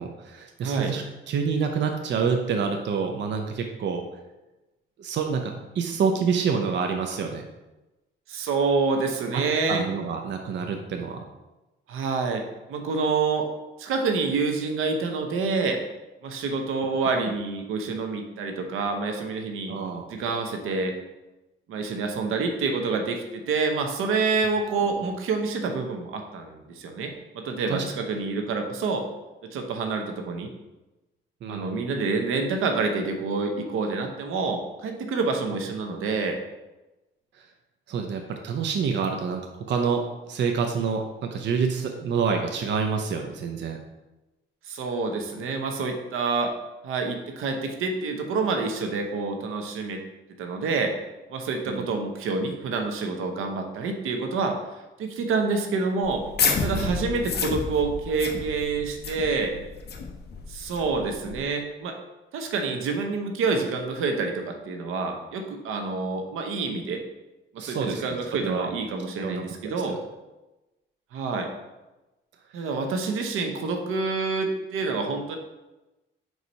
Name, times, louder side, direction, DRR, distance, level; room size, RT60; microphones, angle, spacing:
voice 1, 0.0-4.0 5.0-7.4 9.3-9.4 9.7-11.2 19.7-20.0 27.7-27.8 31.4-31.8 37.9-39.4 39.7-43.8 51.7-51.9 56.6-57.0 67.6-68.0 68.4-68.7 69.2-70.0 72.6-72.7, right 6 dB, 60° right, 3 dB, 0.7 m, -27 dB
voice 2, 0.6-0.9 8.3-9.9 11.9-13.5 13.8-15.8 16.2-19.8 20.1-21.0 21.7-29.1 29.4-30.5 31.5-36.4 44.7-46.5 46.8-50.0 50.4-50.9 51.3-54.6 55.0-56.2 56.6-59.5 60.5-62.0 62.3-67.0 67.5-70.0 71.1-71.5 72.5-75.4, right 4 dB, 85° right, 4 dB, 0.9 m, -27 dB
sound 1, 56.0-61.4, left 5 dB, 50° left, 0.8 m, -30 dB
4.7 x 4.0 x 5.3 m, 1.0 s
cardioid pair, 110°, 21 cm